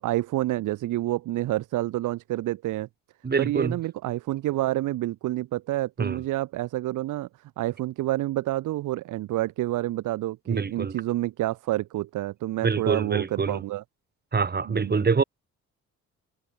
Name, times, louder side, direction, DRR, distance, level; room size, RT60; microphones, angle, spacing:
voice 1, 0.0-2.9 3.4-7.3 7.6-13.8 14.7-14.9, right 16 dB, 90° right, 4.7 m, -28 dB
voice 2, 3.2-3.8 6.0-6.2 10.5-11.0 12.6-13.6 14.3-15.2, right 5 dB, 30° right, 5.2 m, -25 dB
cardioid pair, 90°, 30 cm